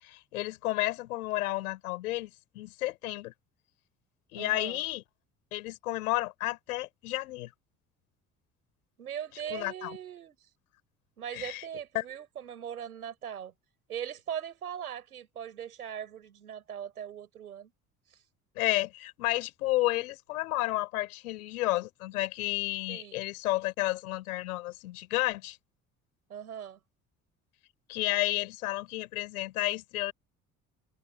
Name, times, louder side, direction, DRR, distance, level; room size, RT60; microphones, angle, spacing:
voice 1, 0.0-3.3 4.3-5.0 5.5-7.5 9.5-10.0 11.3-11.6 11.9-12.0 18.6-25.6 27.9-30.1, left 18 dB, 75° left, 5.2 m, -31 dB
voice 2, 4.3-4.8 9.0-10.4 11.2-13.5 13.9-17.7 22.9-23.2 26.3-26.8, right 9 dB, 85° right, 6.4 m, -40 dB
figure-of-eight pair, 55°, 44 cm